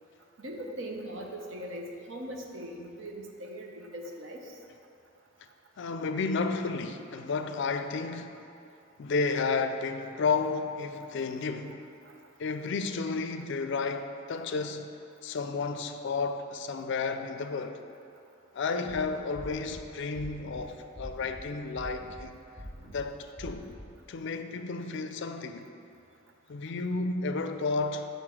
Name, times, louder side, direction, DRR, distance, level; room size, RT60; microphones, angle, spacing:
voice 1, 0.4-4.6 12.0-12.1, right 1 dB, 65° right, 0.8 m, -40 dB
voice 2, 5.8-8.4 9.0-11.8 12.4-14.9 15.2-17.8 18.5-22.3 22.9-23.7 24.1-25.7 26.5-28.1, left 4 dB, 60° left, 0.4 m, -32 dB
sound 1, 18.9-19.0 19.3-19.8 20.1-20.6 20.9-21.4 21.8-22.2 22.6-23.0 23.4-23.8, equal, 30° right, 1.4 m, -45 dB
6.7 x 4.0 x 6.1 m
head